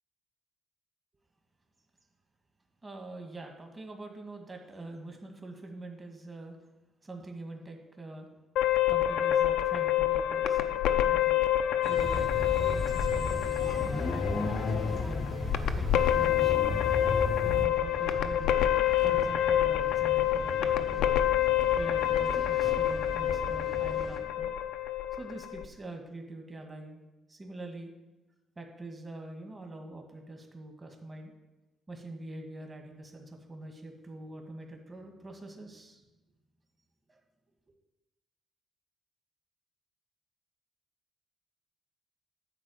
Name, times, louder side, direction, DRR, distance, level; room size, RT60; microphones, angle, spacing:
voice 1, 2.8-6.6 7.0-8.3 8.9-15.2 15.7-17.0 17.4-18.8 19.0-21.1 21.7-24.5 25.1-27.0 27.3-27.9 28.5-31.3 31.9-36.0 37.1-37.2, right 2 dB, 25° right, 2 dB, 1.7 m, -44 dB
sound 1, 8.6-25.6, left 12 dB, 90° left, 0.6 m, -27 dB
sound 2, 11.8-24.2, right 2 dB, 55° right, 1.8 m, -42 dB
sound 3, 12.0-17.7, left 3 dB, 40° left, 0.7 m, -33 dB
10.0 x 4.3 x 7.7 m, 1.1 s
cardioid pair, 90°, 0 cm